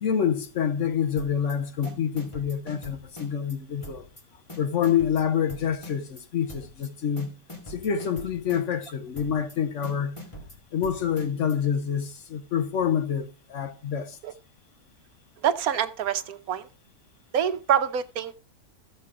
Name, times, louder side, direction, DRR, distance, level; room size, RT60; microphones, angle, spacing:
voice 1, 0.0-4.0 4.6-7.3 7.7-10.2 10.7-14.2, left 8 dB, 60° left, 0.9 m, -27 dB
sound 1, 1.2-1.5 1.8-3.6 3.8-4.2 4.5-6.2 6.5-6.9 7.2-8.9 9.2-9.6 9.8-11.6, equal, 20° left, 2.0 m, -42 dB
voice 2, 15.4-16.7 17.3-18.4, right 9 dB, 70° right, 1.2 m, -26 dB
14.5 x 6.8 x 3.7 m
omnidirectional pair, 1.6 m